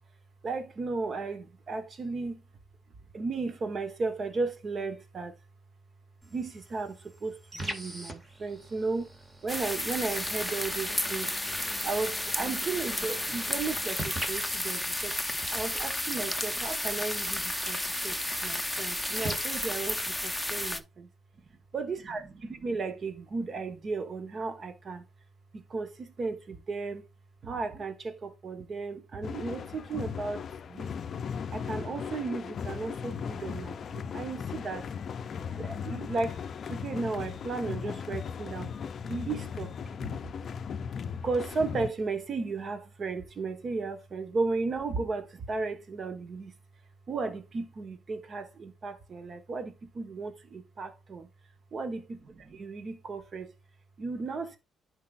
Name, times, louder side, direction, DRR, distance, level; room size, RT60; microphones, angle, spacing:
voice 1, 0.4-2.4 3.1-5.3 6.2-9.1 9.4-11.4 11.8-15.2 15.5-21.1 21.4-21.5 21.7-25.1 25.5-27.1 27.4-30.9 31.5-34.9 35.5-38.7 39.1-40.3 41.2-46.6 47.1-51.3 51.7-53.5 54.0-54.6, right 4 dB, 45° right, 1.3 m, -35 dB
sound 1, 6.2-20.2, right 1 dB, 25° right, 2.1 m, -42 dB
sound 2, 9.5-20.8, left 1 dB, 5° left, 0.8 m, -32 dB
sound 3, 29.2-41.9, left 7 dB, 55° left, 0.4 m, -37 dB
10.5 x 4.7 x 2.5 m
cardioid pair, 90°, 0 cm